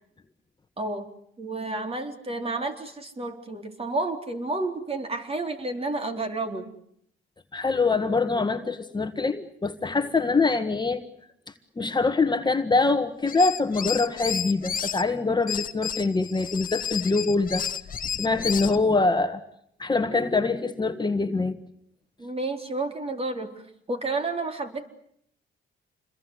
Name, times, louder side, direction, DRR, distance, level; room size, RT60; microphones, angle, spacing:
voice 1, 0.8-1.1 1.4-6.7 22.2-24.9, right 2 dB, 30° right, 5 dB, 4.1 m, -31 dB
voice 2, 7.5-11.0 11.8-17.7 18.2-19.4 19.8-21.6, left 3 dB, 20° left, 8 dB, 1.6 m, -24 dB
sound 1, 13.2-15.0 15.5-18.8, left 8 dB, 45° left, 1.5 m, -31 dB
28.0 x 22.0 x 8.3 m, 0.70 s
cardioid pair, 90°, 20 cm